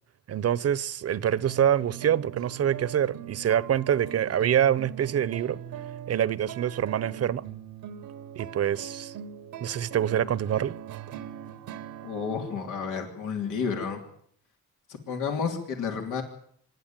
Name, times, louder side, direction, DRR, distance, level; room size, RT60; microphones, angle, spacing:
voice 1, 0.3-5.6 6.1-7.5 8.4-9.1 9.6-10.7, right 9 dB, 55° right, 0.9 m, -25 dB
sound 1, 1.4-14.2, right 10 dB, 80° right, 1.1 m, -41 dB
voice 2, 12.0-14.0 14.9-16.2, left 6 dB, 85° left, 3.3 m, -31 dB
25.5 x 11.0 x 9.2 m
cardioid pair, 90°, 30 cm